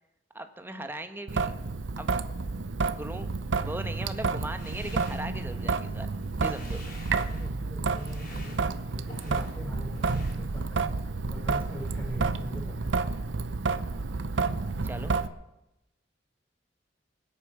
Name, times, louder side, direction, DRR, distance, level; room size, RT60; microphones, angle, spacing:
voice 1, 0.3-1.5 2.0-2.2 2.9-6.1 6.4-6.8 14.8-15.1, right 1 dB, 10° right, 7 dB, 1.2 m, -39 dB
Traffic noise roadway noise / Drip / Trickle dribble, 1.3-15.3, right 4 dB, 80° right, 0.7 m, -30 dB
sound 1, 4.4-5.8 6.1-7.5 7.9-9.6 9.9-10.9, left 2 dB, 50° left, 4.5 m, -50 dB
voice 2, 7.3-13.2, equal, 10° left, -1 dB, 4.2 m, -41 dB
23.5 x 8.4 x 6.2 m, 0.92 s
head